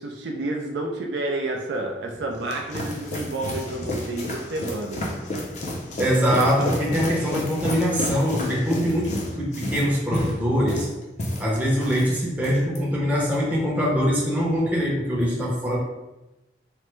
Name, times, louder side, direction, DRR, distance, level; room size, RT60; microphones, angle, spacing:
voice 1, 0.0-5.0, right 2 dB, 65° right, 1 dB, 0.4 m, -30 dB
sound 1, 2.1-12.1 12.4-12.8, left 1 dB, 35° left, 0.4 m, -31 dB
voice 2, 6.0-10.9 11.4-15.8, equal, 10° right, -5 dB, 0.6 m, -23 dB
3.2 x 2.0 x 3.1 m, 1.0 s
head